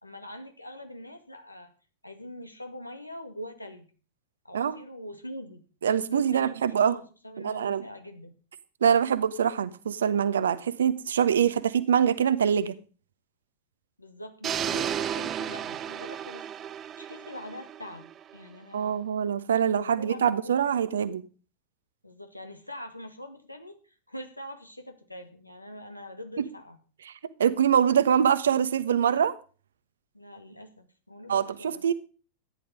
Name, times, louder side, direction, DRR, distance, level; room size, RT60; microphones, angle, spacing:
voice 1, 0.0-1.7 2.0-3.9 4.4-5.6 6.1-8.4 14.0-16.4 17.0-19.0 19.6-20.6 22.0-26.8 30.1-31.9, left 1 dB, 85° left, 2.1 m, -43 dB
voice 2, 5.8-7.0 7.4-7.8 8.8-12.7 18.7-21.2 26.4-26.5 27.1-27.2 27.4-29.3 31.3-31.9, right 8 dB, 65° right, 1.1 m, -24 dB
sound 1, 14.4-18.5, right 9 dB, 30° right, 0.7 m, -33 dB
14.0 x 10.5 x 5.2 m
figure-of-eight pair, 90°, 0 cm